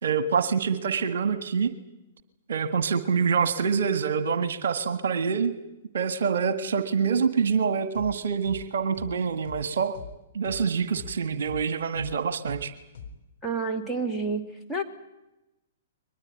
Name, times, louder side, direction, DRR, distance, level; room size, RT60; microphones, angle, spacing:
voice 1, 0.0-1.7 2.5-5.5 5.9-10.0 10.3-12.7, right 6 dB, 60° right, 12 dB, 1.7 m, -26 dB
sound 1, 7.9-8.1 8.4-8.6 8.9-9.1 9.4-9.6 9.9-10.1 10.4-10.6 10.9-11.1 11.4-11.6 11.9-12.1 12.4-12.6 12.9-13.1, left 7 dB, 55° left, 4.0 m, -41 dB
voice 2, 13.4-14.4 14.7-14.8, right 3 dB, ahead, -1 dB, 2.9 m, -28 dB
23.0 x 20.5 x 9.2 m, 0.92 s
figure-of-eight pair, 110°, 0 cm